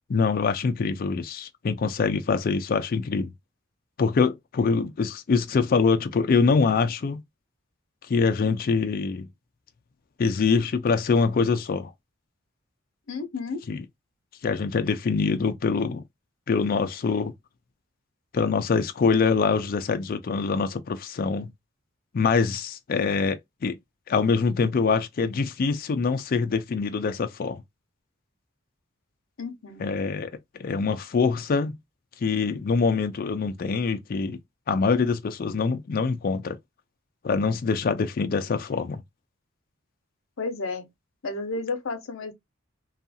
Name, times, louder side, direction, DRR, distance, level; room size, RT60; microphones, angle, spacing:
voice 1, 0.1-3.3 4.0-7.2 8.1-9.3 10.2-11.9 13.7-13.8 14.4-16.0 16.5-17.3 18.3-21.5 22.1-23.8 24.1-27.6 29.8-30.3 30.6-31.8 32.2-34.4 34.7-36.6 37.2-39.0, left 5 dB, 45° left, 0.3 m, -24 dB
voice 2, 13.1-13.6 29.4-29.9 40.4-40.9 41.2-42.3, left 3 dB, 75° left, 0.7 m, -32 dB
2.7 x 2.4 x 2.6 m
head